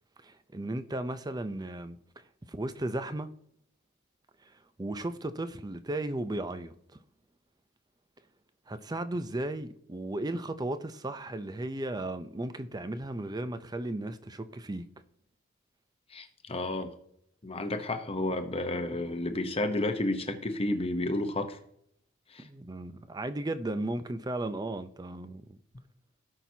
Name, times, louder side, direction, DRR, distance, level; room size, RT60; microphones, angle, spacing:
voice 1, 0.2-3.3 4.4-7.0 8.7-14.9 22.4-25.6, right 1 dB, 15° right, 0.5 m, -35 dB
voice 2, 16.1-16.9 17.4-21.6 22.3-22.5, left 1 dB, 25° left, 0.8 m, -31 dB
17.5 x 5.9 x 2.8 m
head